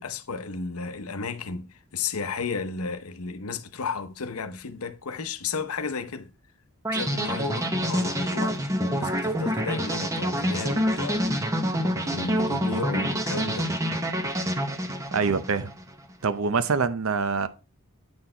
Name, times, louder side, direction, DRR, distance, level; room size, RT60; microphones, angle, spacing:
voice 1, 0.0-6.3 6.9-8.6 8.9-11.5 12.0-13.8, left 4 dB, 85° left, 0.8 m, -33 dB
sound 1, 6.8-15.9, equal, 15° right, 0.8 m, -27 dB
voice 2, 15.1-15.7 16.2-17.5, right 5 dB, 75° right, 0.7 m, -25 dB
8.8 x 4.3 x 4.4 m
head